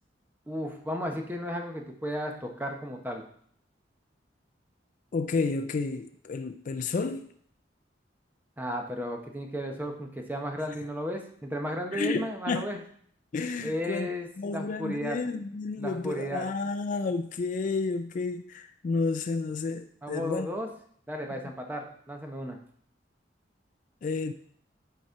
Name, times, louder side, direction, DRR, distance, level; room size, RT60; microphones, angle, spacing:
voice 1, 0.5-3.2 8.6-12.8 13.6-15.2 15.8-16.5 20.0-20.7 21.1-22.6, equal, 10° right, 0.9 m, -34 dB
voice 2, 5.1-7.3 11.9-12.6 13.3-14.1 14.4-20.5 24.0-24.3, left 4 dB, 45° left, 0.3 m, -31 dB
9.2 x 4.2 x 4.6 m
head